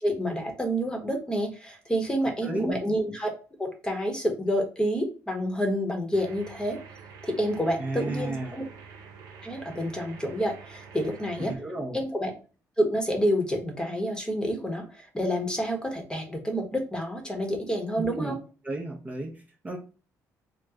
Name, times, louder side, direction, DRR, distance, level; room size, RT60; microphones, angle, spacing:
voice 1, 0.0-3.3 3.6-6.8 7.2-8.6 9.4-11.6 11.9-12.3 12.8-18.4, equal, 10° left, 1.0 m, -28 dB
voice 2, 2.4-2.8 7.8-8.6 11.5-12.0 18.0-18.3 18.6-19.8, right 2 dB, 20° right, 0.8 m, -33 dB
sound 1, 6.1-11.6, right 6 dB, 90° right, 0.6 m, -47 dB
3.0 x 2.1 x 3.6 m
cardioid pair, 90°, 7 cm